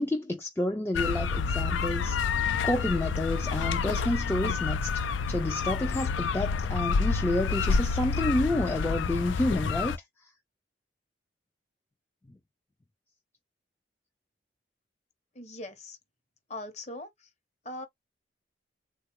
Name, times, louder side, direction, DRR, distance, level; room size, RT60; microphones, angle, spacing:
voice 1, 0.0-10.0, left 1 dB, 10° left, 0.3 m, -30 dB
sound 1, 0.9-10.0, left 5 dB, 80° left, 0.4 m, -28 dB
voice 2, 15.3-16.0 16.5-17.3 17.6-17.9, left 1 dB, 35° left, 0.9 m, -40 dB
3.6 x 2.3 x 2.9 m
head